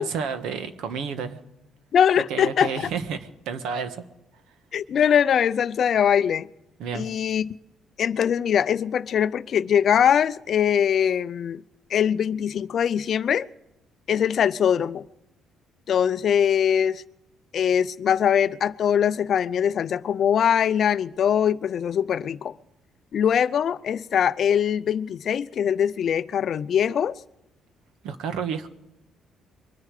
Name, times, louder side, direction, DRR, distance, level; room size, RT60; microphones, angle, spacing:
voice 1, 0.0-1.4 2.3-4.0 6.8-7.1 28.0-28.7, right 6 dB, 85° right, 1.5 m, -30 dB
voice 2, 1.9-2.7 4.7-6.5 6.9-7.5 8.0-11.6 11.9-13.5 14.1-15.0 15.9-17.0 17.5-22.5 23.1-27.2, left 8 dB, 40° left, 0.5 m, -22 dB
23.0 x 10.5 x 4.9 m
cardioid pair, 175°, 0 cm